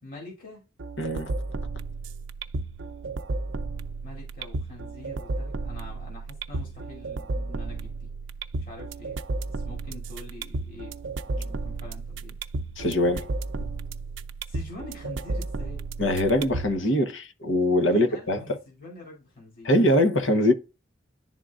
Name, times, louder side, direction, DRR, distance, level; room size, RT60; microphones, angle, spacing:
voice 1, 0.0-0.6 4.0-8.1 8.6-9.2 9.5-11.0 11.3-12.4 14.5-15.8 17.8-19.7, left 2 dB, 50° left, 2.6 m, -44 dB
sound 1, 0.8-16.8, right 3 dB, 85° right, 0.5 m, -33 dB
voice 2, 1.0-1.3 12.8-13.3 16.0-18.4 19.6-20.5, left 1 dB, 85° left, 1.0 m, -22 dB
11.0 x 3.8 x 2.4 m
head